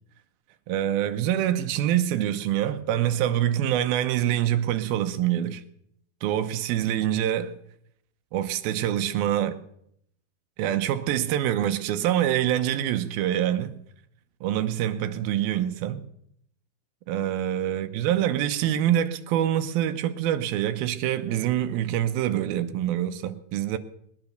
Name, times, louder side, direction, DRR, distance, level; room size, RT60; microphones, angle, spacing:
voice 1, 0.7-5.6 6.2-7.6 8.3-9.6 10.6-13.7 14.4-16.0 17.1-23.8, right 11 dB, 75° right, 2.5 m, -25 dB
20.0 x 10.5 x 6.6 m
omnidirectional pair, 4.7 m